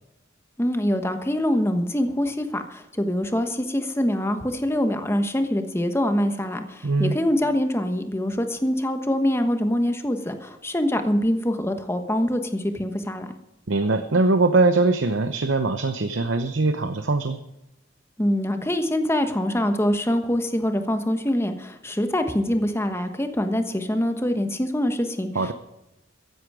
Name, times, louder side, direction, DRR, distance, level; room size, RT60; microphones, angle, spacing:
voice 1, 0.6-13.3 18.2-25.5, left 1 dB, 15° left, 7 dB, 1.3 m, -24 dB
voice 2, 6.8-7.2 13.7-17.4 25.3-25.5, right 3 dB, 85° right, 9 dB, 0.8 m, -21 dB
14.5 x 11.0 x 5.0 m, 0.91 s
head